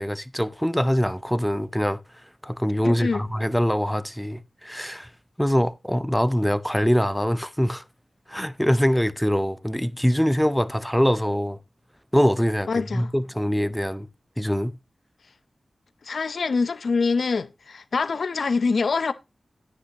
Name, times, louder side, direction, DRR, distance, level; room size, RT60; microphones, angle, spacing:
voice 1, 0.0-2.0 2.4-5.1 5.4-7.8 8.3-11.6 12.1-14.1 14.4-14.8, equal, 5° left, 0.7 m, -23 dB
voice 2, 2.8-3.2 12.7-13.1 16.0-19.1, left 4 dB, 75° left, 0.6 m, -25 dB
9.7 x 8.5 x 2.9 m
cardioid pair, 40°, 0 cm